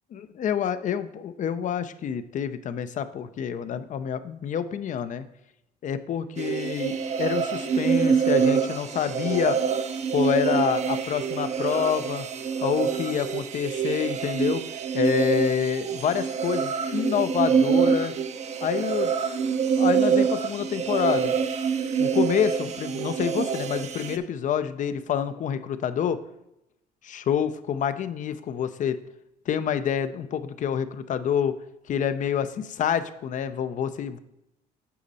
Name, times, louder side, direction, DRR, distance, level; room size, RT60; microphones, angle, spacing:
voice 1, 0.1-5.2 5.8-9.6 10.1-12.3 12.6-14.6 14.9-18.1 18.6-19.1 19.8-21.4 22.0-26.2 27.0-29.0 29.5-31.5 31.9-34.2, left 8 dB, 50° left, 12 dB, 0.6 m, -27 dB
sound 1, 6.4-24.2, right 6 dB, 40° right, 0.6 m, -25 dB
8.4 x 5.2 x 4.1 m, 0.86 s
cardioid pair, 110°, 17 cm